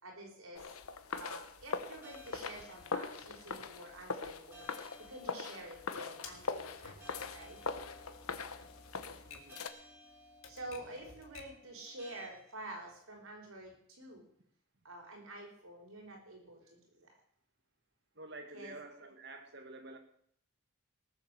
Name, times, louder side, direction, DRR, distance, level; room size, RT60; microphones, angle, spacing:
voice 1, 0.0-0.7 1.1-7.6 10.5-14.3 14.8-17.1 18.5-18.7, right 1 dB, 75° right, 1 dB, 4.7 m, -49 dB
sound 1, 0.5-9.7, left 4 dB, 85° left, 1.1 m, -42 dB
sound 2, 2.0-12.3, equal, 10° right, 4.4 m, -58 dB
Typewriter, 6.2-11.7, left 4 dB, 65° left, 2.1 m, -55 dB
voice 2, 18.2-20.0, right 2 dB, 50° right, 5 dB, 2.0 m, -49 dB
18.5 x 7.5 x 6.8 m, 0.64 s
head